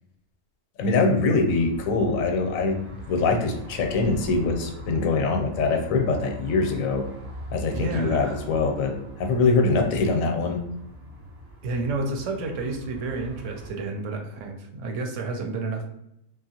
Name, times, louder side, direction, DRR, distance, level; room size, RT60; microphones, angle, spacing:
voice 1, 0.8-2.8 3.1-7.0 7.5-10.6, left 3 dB, 85° left, 4 dB, 1.0 m, -23 dB
sound 1, 1.4-13.7, equal, 50° right, 0.8 m, -41 dB
voice 2, 7.7-8.4 11.6-15.9, right 3 dB, 75° right, 3 dB, 0.9 m, -30 dB
2.8 x 2.4 x 2.8 m, 0.80 s
omnidirectional pair, 1.4 m